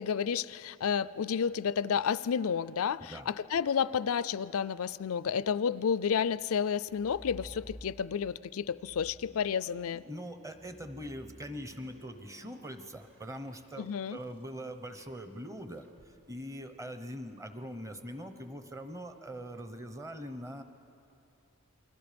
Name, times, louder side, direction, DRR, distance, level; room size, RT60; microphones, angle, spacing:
voice 1, 0.0-10.0 13.8-14.2, left 7 dB, 65° left, 18 dB, 0.4 m, -31 dB
sound 1, 6.8-8.3 8.7-14.2 15.8-16.1, equal, 50° right, 2.3 m, -53 dB
voice 2, 9.9-20.6, equal, 15° right, 8 dB, 1.0 m, -42 dB
29.5 x 22.0 x 5.2 m, 2.7 s
head